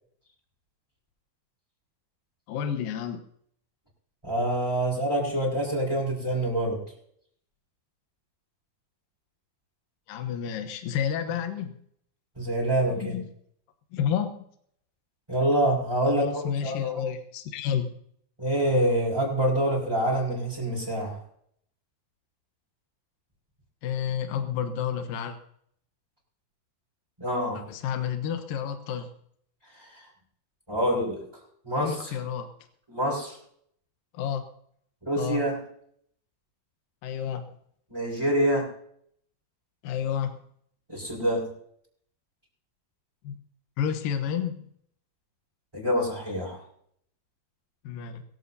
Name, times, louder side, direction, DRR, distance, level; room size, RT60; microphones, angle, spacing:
voice 1, 2.5-3.2 10.1-11.8 12.9-13.3 13.9-14.4 16.0-17.9 23.8-25.4 27.5-29.1 31.8-32.5 34.1-34.4 35.2-35.4 37.0-37.4 39.8-40.3 43.2-43.4 43.8-44.7 47.8-48.2, left 8 dB, 75° left, 5 dB, 2.8 m, -30 dB
voice 2, 4.2-6.8 12.4-13.1 15.3-17.0 18.4-21.2 27.2-27.6 29.8-30.0 30.7-31.2 31.6-32.2 32.9-33.4 35.0-35.6 37.9-38.7 40.9-41.5 45.7-46.6, right 1 dB, 5° right, -7 dB, 4.9 m, -26 dB
22.0 x 15.5 x 2.8 m, 0.67 s
omnidirectional pair, 4.2 m